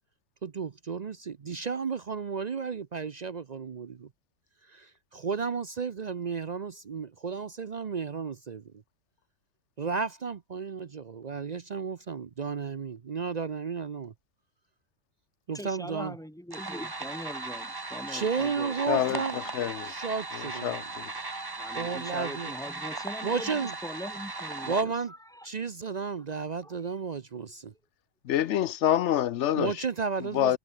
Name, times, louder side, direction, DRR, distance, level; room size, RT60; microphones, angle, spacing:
voice 1, 0.4-4.1 4.7-8.6 9.8-14.1 15.5-16.1 18.1-19.5 19.8-20.8 21.7-22.5 23.2-23.7 24.7-25.1 25.4-27.7 29.5-30.6, right 5 dB, 65° right, 0.4 m, -33 dB
voice 2, 15.5-19.2 19.6-19.7 21.6-25.5 26.6-26.7, equal, ahead, 4.7 m, -42 dB
sound 1, 16.5-24.8, right 3 dB, 15° right, 1.0 m, -37 dB
voice 3, 18.9-19.2 19.5-19.9 20.6-21.1 28.3-29.7 30.3-30.6, left 11 dB, 65° left, 0.7 m, -26 dB
omnidirectional pair, 1.7 m